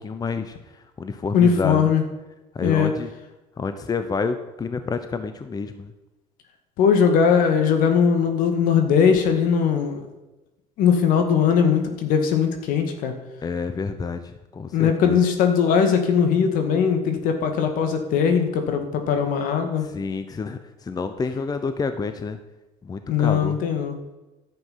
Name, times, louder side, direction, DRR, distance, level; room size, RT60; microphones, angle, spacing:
voice 1, 0.0-1.9 2.5-3.1 3.6-5.9 13.4-15.2 19.8-22.4 22.8-23.6, left 4 dB, 25° left, 9 dB, 0.8 m, -29 dB
voice 2, 1.3-2.0 2.6-2.9 6.8-10.1 10.8-13.1 14.7-19.8 23.1-24.0, left 7 dB, 70° left, 6 dB, 1.9 m, -20 dB
11.0 x 7.9 x 5.7 m, 1.1 s
supercardioid pair, 90°, 14 cm